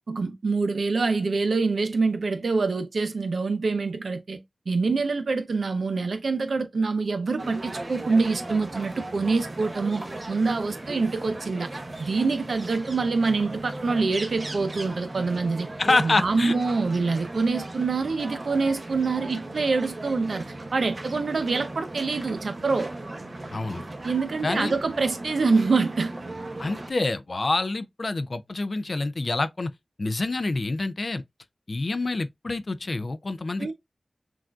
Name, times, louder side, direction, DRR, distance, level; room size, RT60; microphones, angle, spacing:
voice 1, 0.1-11.7 12.0-15.7 16.0-20.5 20.7-22.9 24.0-26.1 33.6-33.7, right 4 dB, 85° right, 0.6 m, -25 dB
sound 1, 7.4-26.9, right 2 dB, 45° right, 0.8 m, -37 dB
voice 2, 15.8-16.5 23.5-23.8 24.4-24.7 26.6-29.7 30.0-31.2 31.7-33.7, left 3 dB, 60° left, 0.3 m, -27 dB
5.9 x 2.5 x 2.3 m
wide cardioid pair, 60°, 0 cm